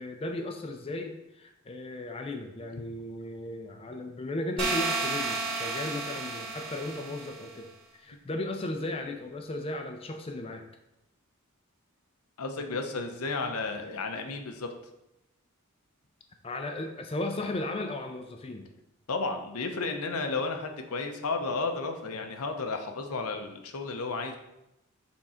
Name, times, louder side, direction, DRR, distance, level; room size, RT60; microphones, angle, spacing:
voice 1, 0.0-10.6 16.4-18.7, left 2 dB, 25° left, 4 dB, 0.5 m, -36 dB
sound 1, 4.6-7.5, right 3 dB, 25° right, 2.1 m, -32 dB
voice 2, 12.4-14.7 19.1-24.4, left 3 dB, 90° left, 5 dB, 0.8 m, -33 dB
7.1 x 3.7 x 4.3 m, 0.90 s
head